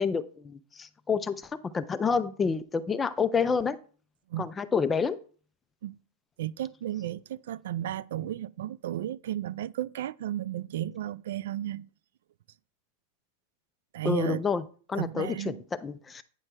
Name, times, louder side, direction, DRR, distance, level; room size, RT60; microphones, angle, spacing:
voice 1, 0.0-3.8 4.4-5.2 14.0-14.6 14.9-16.2, left 5 dB, 10° left, 0.3 m, -28 dB
voice 2, 6.4-11.9 13.9-14.4 14.9-15.6, right 12 dB, 65° right, 0.3 m, -33 dB
9.1 x 3.3 x 6.0 m
supercardioid pair, 175°, 0 cm